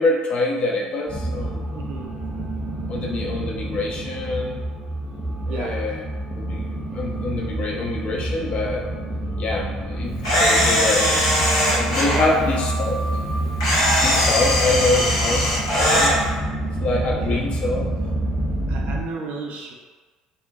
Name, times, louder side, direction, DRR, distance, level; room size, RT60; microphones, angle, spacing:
voice 1, 0.0-1.9 2.9-4.7 5.5-6.1 6.4-8.8 9.4-13.0 14.0-16.1 16.8-17.8, left 2 dB, 45° left, -1 dB, 0.4 m, -25 dB
sound 1, 1.1-19.0, right 1 dB, 5° left, 0.6 m, -27 dB
voice 2, 1.7-2.1 5.5-5.9 12.1-12.6 17.2-17.4 18.6-19.7, right 3 dB, 55° right, 0 dB, 0.4 m, -32 dB
Camera, 10.2-12.2 13.6-16.1, equal, 85° left, 0.7 m, -20 dB
2.3 x 2.1 x 2.6 m, 1.3 s
hypercardioid pair, 60°, 3 cm